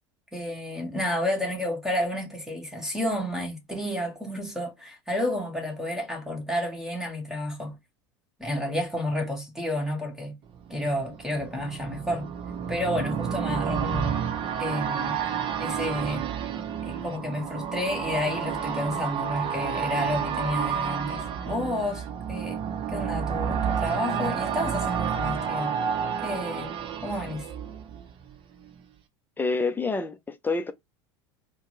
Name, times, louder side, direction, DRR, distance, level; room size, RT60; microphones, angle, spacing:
voice 1, 0.3-7.8 8.4-10.4 10.7-12.3 12.7-14.2 14.6-15.2 15.6-16.3 16.8-22.6 22.9-25.7 26.2-27.5, left 1 dB, 5° right, 1.7 m, -31 dB
sound 1, 10.6-28.4 28.7-28.8, right 7 dB, 40° right, 0.8 m, -30 dB
voice 2, 29.4-30.7, left 3 dB, 15° left, 0.7 m, -27 dB
4.5 x 2.3 x 3.0 m
figure-of-eight pair, 80°, 14 cm